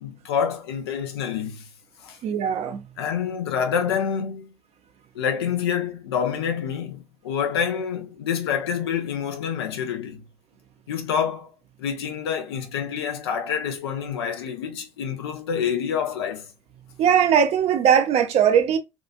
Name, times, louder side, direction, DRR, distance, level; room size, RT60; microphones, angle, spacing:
voice 1, 0.0-1.7 2.0-2.2 3.0-4.5 5.1-10.2 10.9-11.5 11.8-16.5, left 7 dB, 75° left, 0.6 m, -27 dB
voice 2, 2.2-2.8 17.0-18.8, right 8 dB, 50° right, 0.6 m, -19 dB
2.7 x 2.4 x 2.3 m
figure-of-eight pair, 55°, 13 cm